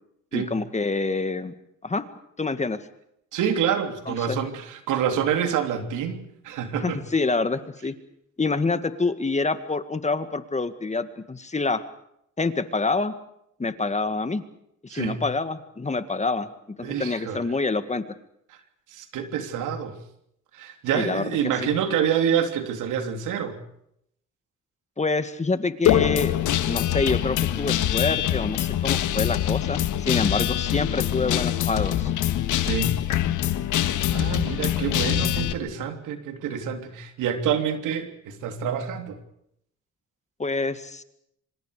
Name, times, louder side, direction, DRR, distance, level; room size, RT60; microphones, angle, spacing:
voice 1, 0.3-1.5 1.8-2.0 2.4-2.8 4.1-4.4 6.8-8.0 8.4-11.8 12.4-13.1 13.6-14.4 14.9-16.5 16.8-18.0 20.9-21.3 21.6-21.7 25.0-26.3 26.7-32.1 40.4-41.0, left 3 dB, 25° left, 11 dB, 2.0 m, -26 dB
voice 2, 3.3-7.0 14.9-15.2 16.8-17.5 18.9-20.0 20.5-23.6 32.6-33.0 33.7-39.2, right 8 dB, 90° right, 7 dB, 3.2 m, -27 dB
Guitar, 25.9-35.5, left 12 dB, 80° left, 1.7 m, -24 dB
26.5 x 25.5 x 5.1 m, 0.75 s
cardioid pair, 90°, 30 cm